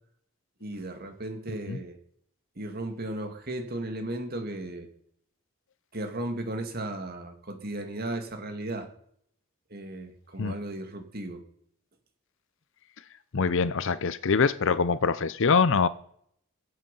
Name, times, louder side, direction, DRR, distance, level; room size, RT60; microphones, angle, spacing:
voice 1, 0.6-2.0 2.6-4.9 5.9-8.9 9.7-11.4, right 1 dB, 45° right, 6 dB, 2.2 m, -35 dB
voice 2, 13.3-15.9, left 5 dB, 60° left, 15 dB, 0.6 m, -24 dB
23.5 x 7.9 x 5.4 m, 0.68 s
head